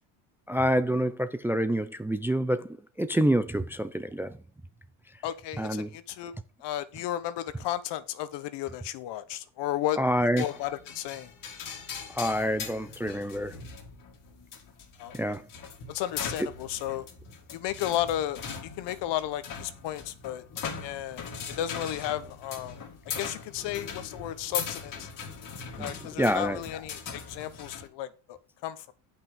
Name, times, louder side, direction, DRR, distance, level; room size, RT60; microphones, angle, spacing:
voice 1, 0.5-2.7 3.0-4.3 5.6-5.9 10.0-10.4 12.1-13.6 15.1-15.4 25.8-25.9 26.2-26.6, equal, 5° right, 0.4 m, -27 dB
voice 2, 5.2-6.3 6.6-10.0 10.4-11.3 15.0-15.4 15.9-17.1 17.5-20.4 20.8-21.2 21.6-22.8 23.2-25.1 25.8-28.9, left 12 dB, 65° left, 1.3 m, -33 dB
sound 1, 10.4-27.9, left 6 dB, 45° left, 2.4 m, -40 dB
8.8 x 5.9 x 5.4 m
cardioid pair, 110°, 45 cm